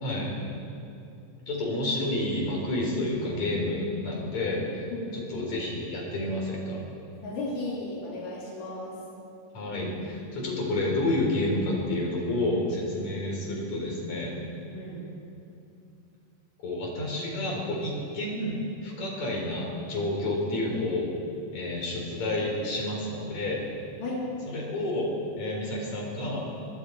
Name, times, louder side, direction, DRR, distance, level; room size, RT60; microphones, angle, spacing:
voice 1, 0.0-0.3 1.5-4.9 5.1-6.8 9.5-14.4 16.6-21.1 21.5-23.6 24.5-25.1 25.4-26.4, left 1 dB, 60° left, -2 dB, 5.7 m, -30 dB
voice 2, 7.2-8.9 14.7-15.1 24.0-24.2, left 2 dB, 75° left, -5 dB, 5.0 m, -35 dB
24.5 x 23.0 x 4.9 m, 2.7 s
omnidirectional pair, 3.7 m